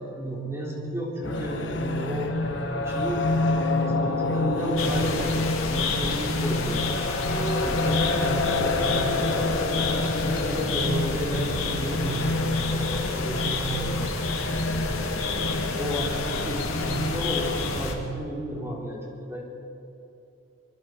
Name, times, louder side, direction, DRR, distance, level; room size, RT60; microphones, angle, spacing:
voice 1, 0.0-2.4 2.8-3.3 3.7-6.9 7.3-15.4 15.8-19.4, right 1 dB, 15° right, -3 dB, 3.9 m, -32 dB
sound 1, 1.2-18.0, left 2 dB, 60° left, 1.4 m, -28 dB
sound 2, 4.8-17.9, left 3 dB, 90° left, 2.4 m, -30 dB
25.0 x 22.0 x 4.7 m, 2.9 s
head